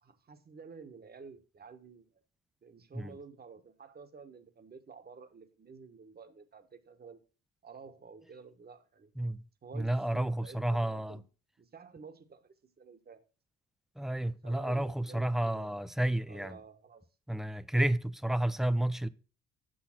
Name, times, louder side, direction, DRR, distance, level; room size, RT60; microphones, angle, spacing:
voice 1, 0.0-2.1 2.6-7.2 7.6-9.1 9.6-11.2 11.6-13.2 14.4-15.9 16.3-17.0, right 5 dB, 30° right, 1.1 m, -51 dB
voice 2, 9.7-11.2 14.0-16.6 17.3-19.1, right 1 dB, ahead, 0.4 m, -31 dB
7.0 x 6.4 x 5.8 m
cardioid pair, 90°, 30 cm